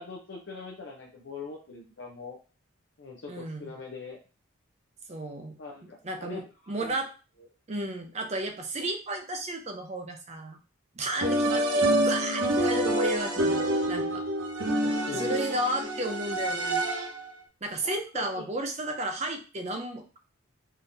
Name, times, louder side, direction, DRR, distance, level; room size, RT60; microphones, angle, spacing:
voice 1, 0.0-2.4 3.0-4.2 5.6-6.9 14.8-15.4 17.8-18.4, left 4 dB, 60° left, 0 dB, 0.6 m, -42 dB
voice 2, 3.3-3.7 5.1-5.6 5.8-7.1 7.7-10.6 11.0-14.2 15.1-16.8 17.6-20.2, right 1 dB, 30° right, 5 dB, 0.5 m, -33 dB
sound 1, 11.2-17.3, right 1 dB, 70° right, 0.9 m, -27 dB
3.7 x 2.8 x 2.6 m, 0.34 s
head